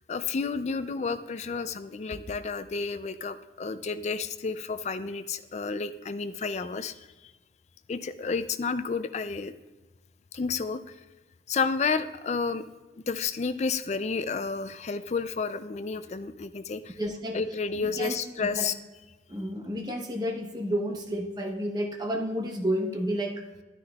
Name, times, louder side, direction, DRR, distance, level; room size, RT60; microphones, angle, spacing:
voice 1, 0.1-6.9 7.9-9.5 10.3-10.8 11.5-12.6 13.0-17.0 17.3-18.7, left 4 dB, 35° left, 12 dB, 0.4 m, -31 dB
voice 2, 17.0-17.4 17.7-18.7 19.3-23.4, equal, 20° right, 2 dB, 0.9 m, -31 dB
11.5 x 9.8 x 2.3 m, 1.2 s
head